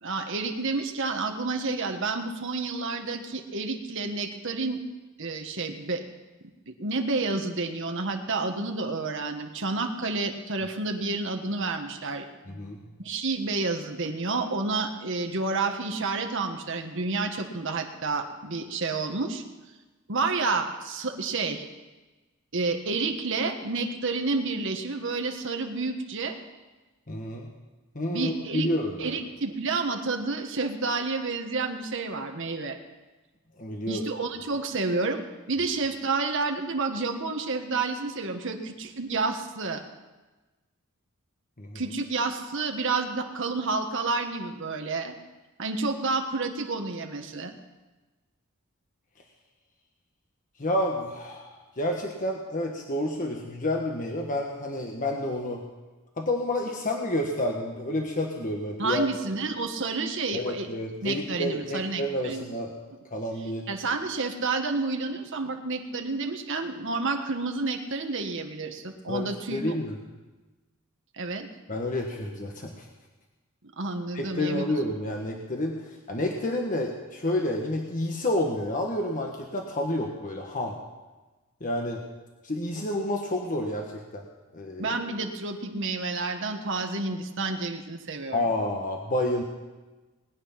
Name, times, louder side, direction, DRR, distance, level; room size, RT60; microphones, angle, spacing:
voice 1, 0.0-4.8 5.2-6.0 6.7-12.2 13.0-19.4 20.1-21.7 22.5-26.4 28.1-28.7 29.0-32.8 33.9-35.2 35.5-39.8 41.7-45.1 45.6-47.5 58.8-60.7 61.0-62.5 63.7-69.6 71.1-71.5 73.8-74.6 84.8-88.5, right 3 dB, 65° right, 4 dB, 1.5 m, -30 dB
voice 2, 12.5-12.8 27.1-27.5 27.9-29.2 33.6-34.0 41.6-41.8 50.6-55.6 56.2-59.1 60.3-62.7 63.1-63.7 69.1-70.0 71.7-72.9 74.1-75.8 76.1-80.7 81.6-82.0 82.4-83.9 84.1-84.3 84.5-85.0 88.3-89.4, left 1 dB, 40° left, 1 dB, 1.4 m, -29 dB
20.0 x 9.5 x 5.8 m, 1.2 s
head